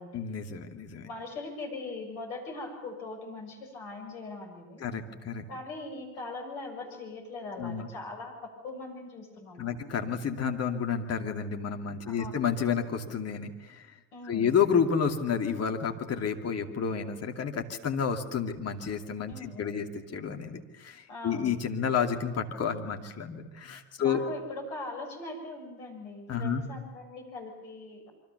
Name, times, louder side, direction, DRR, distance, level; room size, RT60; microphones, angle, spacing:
voice 1, 0.1-1.1 4.8-5.5 7.6-7.9 9.6-13.8 14.2-24.2 26.3-26.6, left 7 dB, 30° left, 4 dB, 2.6 m, -30 dB
voice 2, 1.0-4.8 5.5-9.8 12.1-12.4 14.1-14.5 19.3-19.8 21.1-21.5 24.0-28.1, left 2 dB, 65° left, 2 dB, 6.9 m, -41 dB
27.0 x 24.5 x 7.1 m, 1.1 s
figure-of-eight pair, 65°, 46 cm